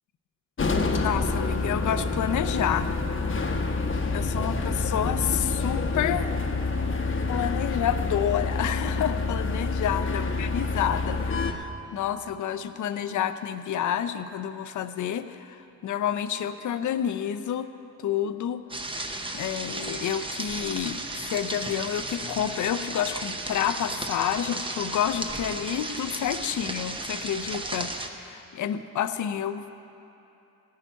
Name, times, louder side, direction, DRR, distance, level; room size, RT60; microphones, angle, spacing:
sound 1, 0.6-11.5, left 3 dB, 35° left, 0.9 m, -27 dB
voice 1, 0.9-2.9 4.1-6.3 7.3-17.7 18.0-18.6 19.3-29.6, left 9 dB, 60° left, 11 dB, 0.6 m, -29 dB
sound 2, 18.7-28.1, right 2 dB, 15° right, 0.7 m, -34 dB
16.5 x 5.7 x 9.1 m, 2.9 s
wide cardioid pair, 135°, 34 cm